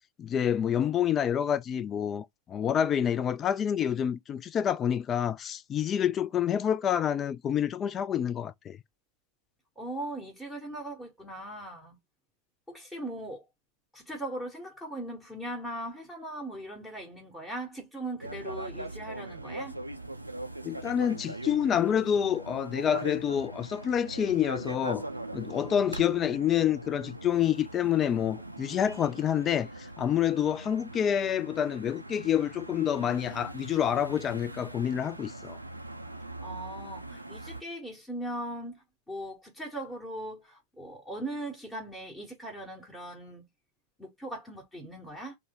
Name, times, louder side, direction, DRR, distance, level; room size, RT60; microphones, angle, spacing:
voice 1, 0.2-8.8 20.6-25.0 25.3-35.6, left 9 dB, 25° left, 0.4 m, -28 dB
voice 2, 9.8-12.0 12.7-13.4 13.9-19.8 36.4-43.5 44.0-45.4, right 1 dB, 5° left, 1.1 m, -39 dB
sound 1, 18.2-37.6, right 2 dB, 85° right, 0.4 m, -41 dB
3.1 x 2.1 x 3.8 m
figure-of-eight pair, 90°, 0 cm